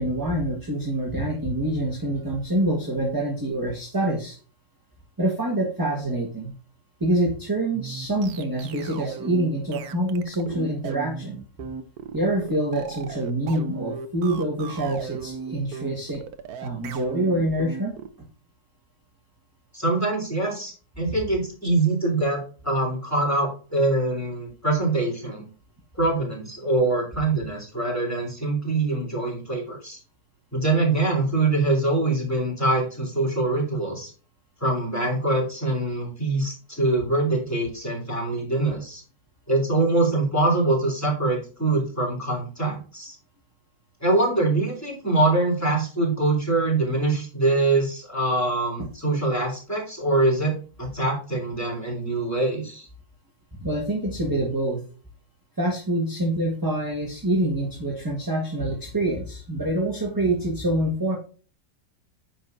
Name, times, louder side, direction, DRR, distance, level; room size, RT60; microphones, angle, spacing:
voice 1, 0.0-4.4 5.2-6.5 7.0-11.4 12.1-16.2 16.6-17.9 48.8-48.9 53.6-54.8 55.6-61.2, right 1 dB, 10° right, -1 dB, 1.5 m, -26 dB
sound 1, 7.7-18.1, right 6 dB, 65° right, 1.2 m, -37 dB
voice 2, 19.7-25.4 26.0-30.0 30.5-34.1 34.6-39.0 39.5-43.1 44.0-50.5 50.8-52.9, right 2 dB, 10° left, -2 dB, 3.4 m, -24 dB
9.1 x 6.0 x 2.7 m, 0.37 s
omnidirectional pair, 1.8 m